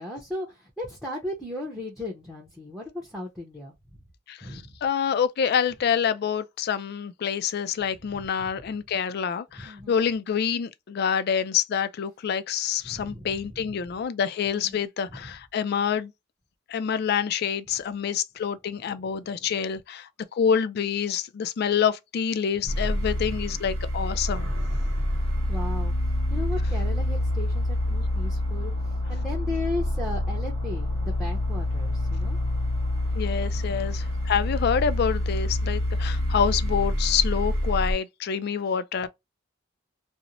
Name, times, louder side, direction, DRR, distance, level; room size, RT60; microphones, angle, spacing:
voice 1, 0.0-4.0 4.4-4.8 8.0-8.5 9.5-10.0 12.8-13.7 14.5-15.3 18.9-19.5 22.5-23.4 25.1-25.9 26.3-32.6 33.5-34.1 39.0-39.1, left 1 dB, ahead, 0.6 m, -37 dB
voice 2, 4.3-16.1 16.7-24.5 33.1-39.1, left 7 dB, 55° left, 0.3 m, -27 dB
sound 1, 22.7-37.9, left 1 dB, 75° right, 1.0 m, -27 dB
2.5 x 2.0 x 2.8 m
head